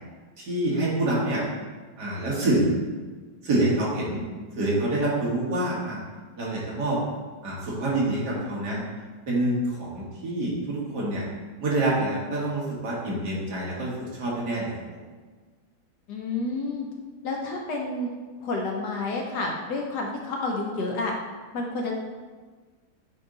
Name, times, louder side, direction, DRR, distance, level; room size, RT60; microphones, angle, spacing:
voice 1, 0.4-1.4 2.0-2.7 3.4-4.2 4.6-6.0 6.4-7.0 7.4-8.8 9.3-11.2 11.6-14.7, right 1 dB, 55° right, -6 dB, 2.0 m, -26 dB
voice 2, 16.1-16.9 17.2-18.1 18.4-21.1 21.5-22.0, left 2 dB, 65° left, 0 dB, 1.2 m, -29 dB
8.6 x 2.9 x 3.8 m, 1.4 s
omnidirectional pair, 2.2 m